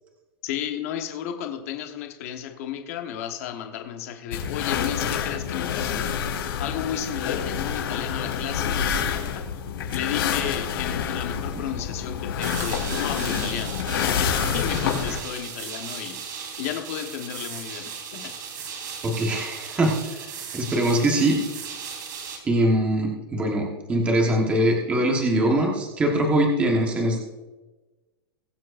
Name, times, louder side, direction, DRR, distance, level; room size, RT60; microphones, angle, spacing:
voice 1, 0.4-6.1 6.6-9.0 9.3-9.5 9.9-13.8 14.2-16.2 16.6-18.3, left 10 dB, 35° left, 5 dB, 1.2 m, -33 dB
sound 1, 4.3-15.2, left 7 dB, 70° left, 3.7 m, -27 dB
sound 2, 12.4-22.4, right 6 dB, 55° right, 2.8 m, -37 dB
voice 2, 19.0-21.4 22.4-27.2, right 1 dB, 10° right, 0 dB, 1.2 m, -23 dB
22.0 x 7.5 x 2.5 m, 1.2 s
supercardioid pair, 180°, 13 cm